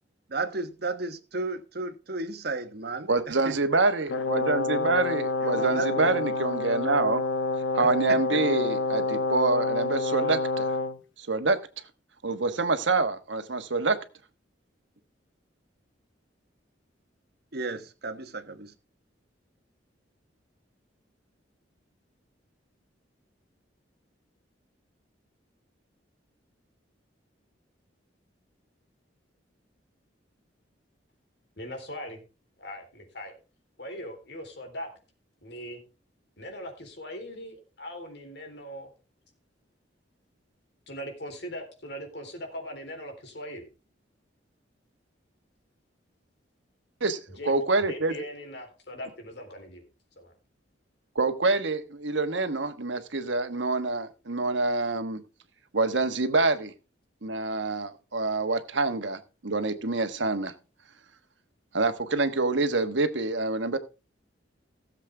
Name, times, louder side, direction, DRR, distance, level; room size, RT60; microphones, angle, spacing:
voice 1, 0.3-3.6 5.4-6.2 7.8-8.5 10.2-10.4 17.5-18.7, right 3 dB, 60° right, 1.2 m, -34 dB
voice 2, 3.1-7.2 7.7-10.7 11.2-11.6 12.2-14.0 47.0-48.1 51.1-55.2 55.7-56.7 57.2-60.5 61.7-63.8, right 3 dB, 80° right, 1.3 m, -26 dB
Brass instrument, 4.1-11.0, left 3 dB, 80° left, 1.0 m, -28 dB
voice 3, 31.6-32.2 32.6-33.4 33.8-34.9 35.4-35.8 36.4-38.9 40.9-43.7 47.3-47.5 47.8-49.8 50.2-50.3, equal, 65° left, 3.7 m, -40 dB
17.0 x 7.5 x 3.4 m
head